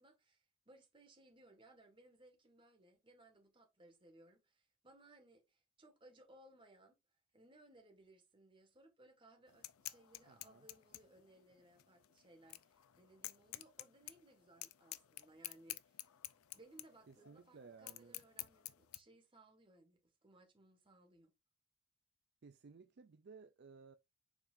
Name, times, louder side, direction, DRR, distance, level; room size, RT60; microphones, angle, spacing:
voice 1, 0.0-7.0 7.3-16.1 16.5-21.3, right 1 dB, 25° right, 1.6 m, -64 dB
sound 1, 9.5-19.0, left 16 dB, 75° left, 0.5 m, -51 dB
voice 2, 10.3-10.7 17.1-18.2 22.4-24.0, right 5 dB, 50° right, 0.4 m, -58 dB
7.2 x 5.3 x 2.5 m
head